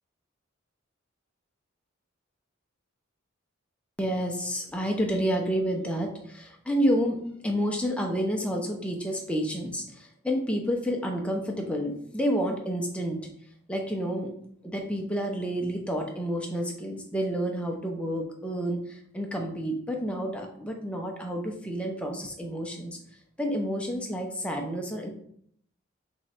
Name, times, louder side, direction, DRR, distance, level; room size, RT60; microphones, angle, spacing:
voice 1, 4.0-13.2 13.7-14.3 14.6-23.0 23.4-25.1, equal, 5° left, 1 dB, 0.6 m, -29 dB
3.5 x 3.1 x 4.2 m, 0.65 s
head